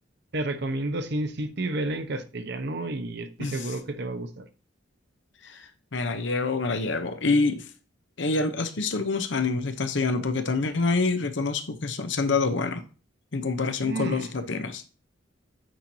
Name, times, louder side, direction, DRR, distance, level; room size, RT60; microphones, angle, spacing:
voice 1, 0.3-4.4 13.8-14.4, right 2 dB, 60° right, 0.8 m, -31 dB
voice 2, 5.9-7.6 8.2-12.8 13.3-14.8, left 3 dB, 65° left, 0.8 m, -26 dB
9.1 x 4.6 x 2.7 m
head